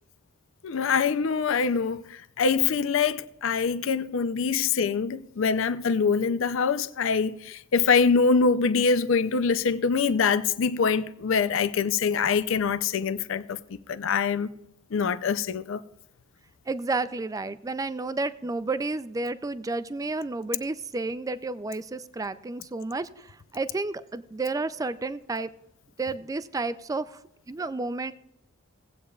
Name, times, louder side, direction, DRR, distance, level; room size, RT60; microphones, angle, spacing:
voice 1, 0.6-13.6 13.9-14.5 14.9-15.8, left 5 dB, 65° left, 0.5 m, -24 dB
voice 2, 16.7-23.1 23.5-25.5 26.0-27.1 27.5-28.1, right 3 dB, 15° right, 0.3 m, -31 dB
18.0 x 8.3 x 2.4 m
head